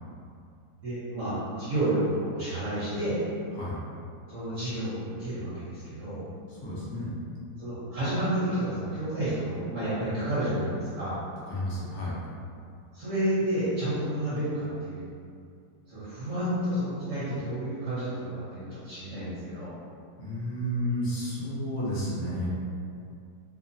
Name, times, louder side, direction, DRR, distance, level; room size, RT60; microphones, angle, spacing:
voice 1, 0.7-3.2 4.3-6.2 7.6-11.2 12.9-15.0 15.9-19.7, right 1 dB, 55° right, -13 dB, 1.1 m, -30 dB
voice 2, 6.5-7.1 11.5-12.2 20.2-22.5, equal, 60° left, -7 dB, 0.9 m, -31 dB
2.9 x 2.1 x 2.6 m, 2.4 s
omnidirectional pair, 1.8 m